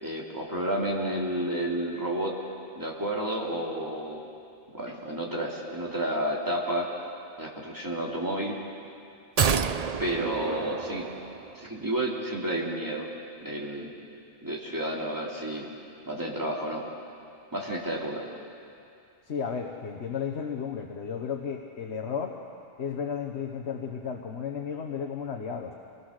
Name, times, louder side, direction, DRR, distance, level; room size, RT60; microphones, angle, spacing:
voice 1, 0.0-2.3 2.8-4.3 4.7-6.9 7.4-8.6 10.0-11.1 11.5-13.1 13.4-13.9 14.4-15.7 16.1-16.8 17.5-18.2, right 1 dB, 20° right, -3 dB, 2.8 m, -31 dB
sound 1, 9.4-11.7 12.0-12.1, right 6 dB, 45° right, 0.6 m, -29 dB
voice 2, 19.3-22.4 22.8-25.7, left 6 dB, 85° left, 3 dB, 1.4 m, -33 dB
26.0 x 19.0 x 6.5 m, 2.5 s
omnidirectional pair, 1.1 m